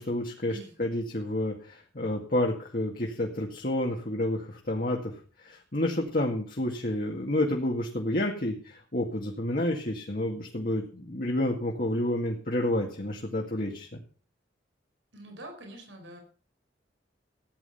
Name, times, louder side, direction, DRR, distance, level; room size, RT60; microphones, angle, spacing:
voice 1, 0.0-5.1 5.4-14.0, left 1 dB, 50° left, 0 dB, 2.1 m, -30 dB
voice 2, 15.1-16.2, right 1 dB, 85° right, 3 dB, 4.8 m, -45 dB
15.5 x 9.9 x 5.7 m, 0.40 s
head